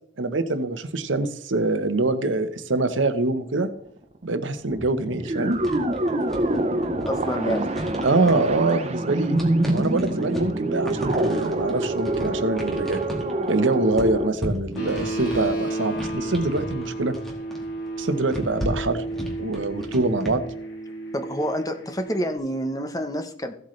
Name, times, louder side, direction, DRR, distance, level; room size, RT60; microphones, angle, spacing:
voice 1, 0.2-3.7 4.2-5.6 7.5-7.6 8.0-9.4 9.6-13.0 13.5-17.1 18.0-19.0 19.4-20.4, right 2 dB, 80° right, 10 dB, 0.9 m, -24 dB
sound 1, 4.0-4.1 4.6-14.3, right 1 dB, 35° right, 0.8 m, -26 dB
sound 2, 5.5-20.3, equal, ahead, 1.8 m, -36 dB
voice 2, 7.0-7.7 21.1-23.5, equal, 20° left, 6 dB, 0.9 m, -28 dB
sound 3, 14.8-22.4, right 2 dB, 65° left, 2.4 m, -32 dB
15.5 x 7.9 x 3.2 m, 0.71 s
head